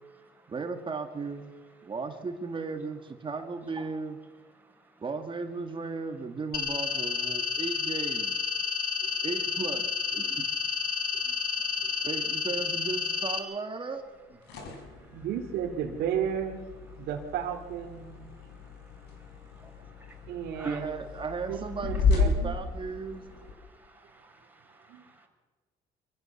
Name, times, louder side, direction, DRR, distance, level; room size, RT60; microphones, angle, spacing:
voice 1, 0.5-1.5 1.8-4.2 5.0-8.4 9.2-9.9 10.1-10.5 12.0-14.0 14.3-14.4 20.6-23.4, right 4 dB, 30° right, 1.9 m, -35 dB
sound 1, 6.5-13.4, left 6 dB, 60° left, 2.9 m, -30 dB
voice 2, 11.1-11.9 15.1-16.6 17.0-18.2 20.3-20.8 21.5-22.6 24.9-25.0, right 8 dB, 80° right, 2.5 m, -34 dB
sound 2, 14.2-23.5, left 4 dB, 80° left, 5.1 m, -33 dB
voice 3, 19.2-19.5 20.0-20.3 20.5-20.8 23.6-25.2, right 2 dB, 10° right, 5.1 m, -52 dB
24.5 x 15.0 x 7.1 m
cardioid pair, 110°, 17 cm